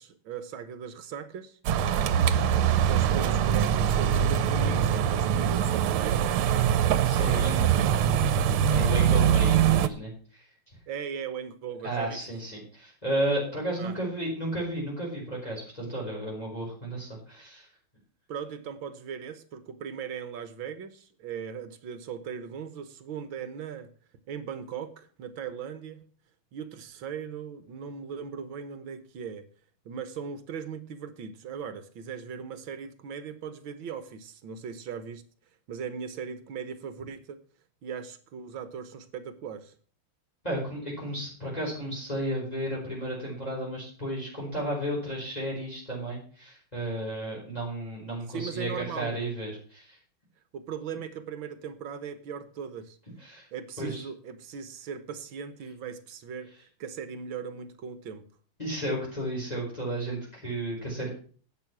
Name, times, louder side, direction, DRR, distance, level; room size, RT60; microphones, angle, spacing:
voice 1, 0.0-1.6 2.8-6.2 7.1-8.0 8.7-9.1 10.9-12.2 13.8-14.0 18.3-23.9 24.3-26.0 26.5-29.5 29.9-35.2 35.7-37.4 37.8-39.7 48.3-49.2 50.5-53.0 53.5-56.5 56.8-58.2, right 7 dB, 70° right, 12 dB, 1.7 m, -38 dB
sound 1, 1.7-9.9, right 9 dB, 85° right, 1.7 m, -23 dB
voice 2, 7.0-7.6 8.7-10.4 11.8-17.7 40.4-50.0 53.2-53.5 53.8-54.0 58.6-61.1, right 1 dB, 15° left, -5 dB, 4.8 m, -33 dB
11.0 x 8.4 x 6.0 m, 0.43 s
omnidirectional pair, 2.3 m